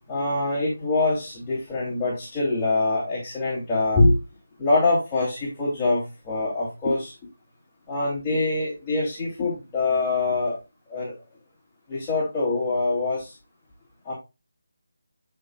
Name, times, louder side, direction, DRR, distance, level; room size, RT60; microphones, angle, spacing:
voice 1, 0.1-4.2 4.6-7.1 7.9-10.6 10.9-11.1 11.9-13.3 14.0-14.1, left 2 dB, 15° left, -8 dB, 2.4 m, -24 dB
12.5 x 4.5 x 2.2 m, 0.25 s
figure-of-eight pair, 165°, 0 cm